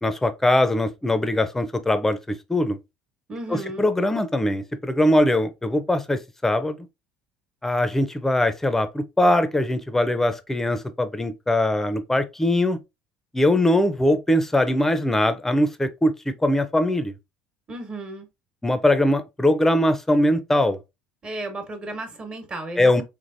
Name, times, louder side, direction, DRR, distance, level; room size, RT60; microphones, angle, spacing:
voice 1, 0.0-2.8 3.5-6.8 7.6-12.8 13.3-17.1 18.6-20.8 22.8-23.0, left 1 dB, 10° left, 0.6 m, -21 dB
voice 2, 3.3-3.9 17.7-18.3 21.2-23.0, right 2 dB, 30° right, 1.3 m, -34 dB
3.5 x 3.2 x 2.6 m
supercardioid pair, 90°, 4 cm